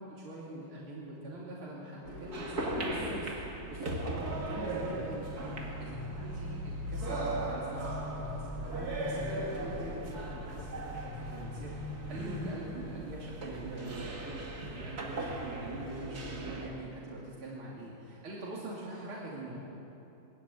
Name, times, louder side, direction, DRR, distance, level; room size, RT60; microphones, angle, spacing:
voice 1, 0.0-3.3 3.7-11.7 12.1-14.1 14.7-19.7, right 1 dB, 85° right, -5 dB, 3.6 m, -44 dB
sound 1, 2.1-16.7, right 2 dB, 50° right, 2.6 m, -38 dB
sound 2, 3.9-12.7, left 3 dB, ahead, 5.7 m, -44 dB
21.0 x 14.0 x 9.4 m, 2.9 s
omnidirectional pair, 2.3 m